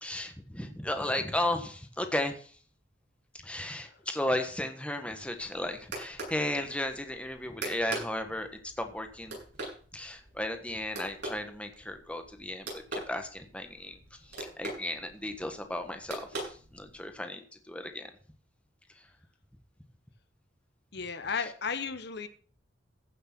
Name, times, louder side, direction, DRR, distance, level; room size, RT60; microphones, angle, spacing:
voice 1, 0.0-2.5 3.4-8.5 8.8-9.4 9.9-16.2 16.5-18.1 21.4-21.5, left 1 dB, 5° left, 6 dB, 1.5 m, -35 dB
sound 1, 5.2-17.1, right 2 dB, 65° right, 7.8 m, -43 dB
voice 2, 20.9-22.3, left 5 dB, 60° left, 10 dB, 1.0 m, -34 dB
15.5 x 6.6 x 6.1 m, 0.43 s
head